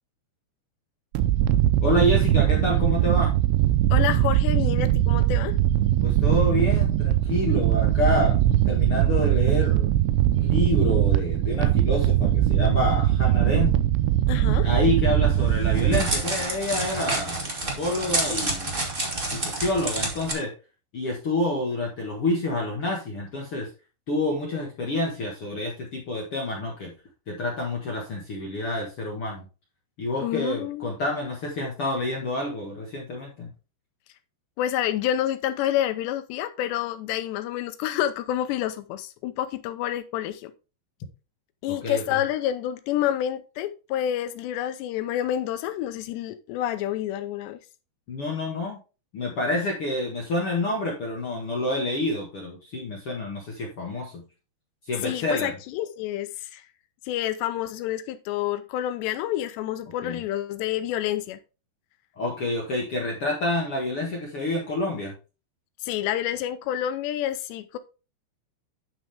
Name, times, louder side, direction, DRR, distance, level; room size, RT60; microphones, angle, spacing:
sound 1, 1.2-16.2, right 13 dB, 80° right, 2.8 m, -21 dB
voice 1, 1.8-3.4 6.0-8.4 8.7-9.9 10.3-13.7 14.6-17.4 17.7-18.8 19.3-20.5 20.9-23.7 24.1-26.9 27.3-29.4 30.0-33.5 41.7-42.2 48.1-48.8 49.1-54.2 54.8-55.6 60.0-60.2 62.2-65.1, left 2 dB, 60° left, 1.5 m, -28 dB
voice 2, 3.9-5.5 14.3-14.7 30.2-30.9 34.6-40.5 41.6-47.6 55.0-56.6 57.1-61.4 65.8-67.8, left 12 dB, 80° left, 2.8 m, -28 dB
Crackle, 15.4-20.3, right 2 dB, 35° right, 0.8 m, -29 dB
9.4 x 6.2 x 3.5 m
omnidirectional pair, 5.1 m